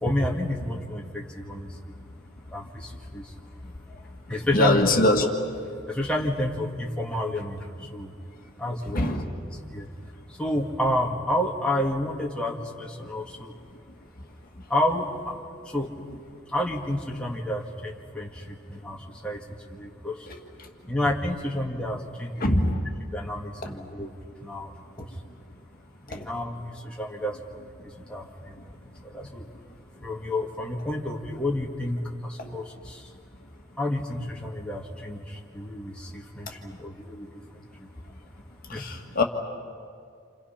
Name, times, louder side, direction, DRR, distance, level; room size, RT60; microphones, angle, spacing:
voice 1, 0.0-1.9 2.5-3.3 4.3-4.9 5.9-8.1 8.6-9.1 9.5-13.5 14.7-15.3 15.7-15.9 16.5-20.3 20.9-22.5 23.1-24.1 24.4-25.2 26.0-28.7 29.0-29.4 30.0-33.1 33.8-37.9 38.7-39.0, left 1 dB, 5° left, -3 dB, 2.0 m, -30 dB
voice 2, 4.5-5.2 8.9-9.3 22.4-22.8 26.1-26.2 32.4-32.5 38.7-39.2, left 1 dB, 45° left, 2 dB, 2.0 m, -22 dB
29.5 x 28.5 x 5.9 m, 2.3 s
head